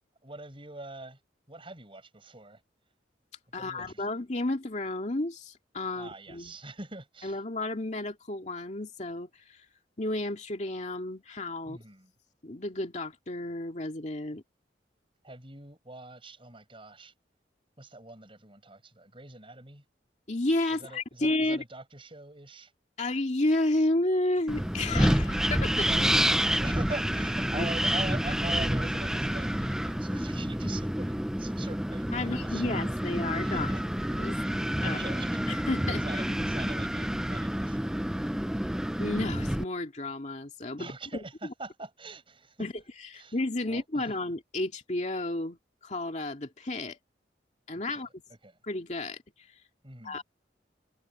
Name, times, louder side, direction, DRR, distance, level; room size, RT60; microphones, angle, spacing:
voice 1, 0.2-1.2 1.5-2.6 3.6-4.0 6.0-7.4 11.6-12.1 15.2-17.1 17.8-19.8 20.7-22.7 25.8-32.9 33.4-33.8 34.3-34.6 34.8-35.6 35.9-38.4 40.8-42.6 43.2-43.4 43.6-44.1 47.9-48.0 48.4-48.5 49.8-50.2, right 2 dB, 30° right, 6.4 m, -43 dB
voice 2, 3.5-6.6 7.2-9.7 10.0-11.8 12.4-14.4 20.3-21.6 23.0-25.8 27.6-27.7 32.1-33.7 34.2-34.4 34.8-35.1 35.5-36.7 39.0-40.9 42.6-47.0 47.7-48.2 48.6-49.6 50.0-50.2, left 2 dB, 40° left, 2.3 m, -32 dB
Wind, 24.5-39.6, equal, 5° right, 0.5 m, -28 dB
head